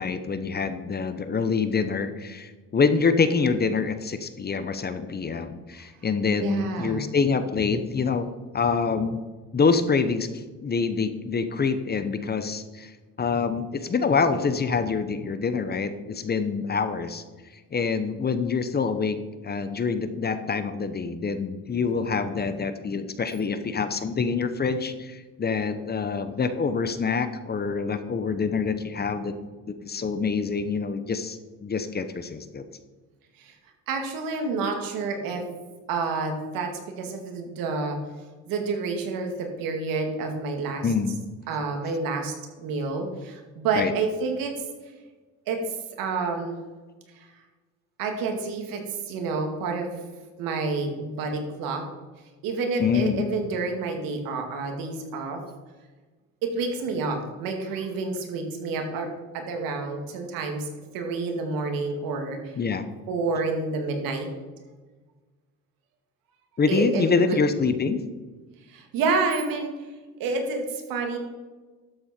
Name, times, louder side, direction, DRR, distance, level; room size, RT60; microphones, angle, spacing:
voice 1, 0.0-8.3 8.5-9.2 9.5-10.3 10.6-12.9 13.2-17.2 17.7-29.4 29.7-32.6 40.8-41.3 43.8-43.9 52.8-53.3 62.6-62.9 66.6-68.0, left 5 dB, 30° left, 10 dB, 0.9 m, -26 dB
voice 2, 6.4-7.0 33.4-33.5 33.9-35.4 35.9-36.7 37.0-38.0 38.5-40.9 41.5-42.3 42.6-44.5 45.5-45.6 46.0-46.6 47.2-47.3 48.0-49.9 50.4-51.8 52.4-55.4 56.4-59.1 59.3-60.7 60.9-62.5 63.1-64.3 66.7-67.4 68.7-69.7 70.2-71.2, right 4 dB, 80° right, 3 dB, 2.3 m, -29 dB
12.5 x 7.7 x 4.5 m, 1.3 s
cardioid pair, 105°, 34 cm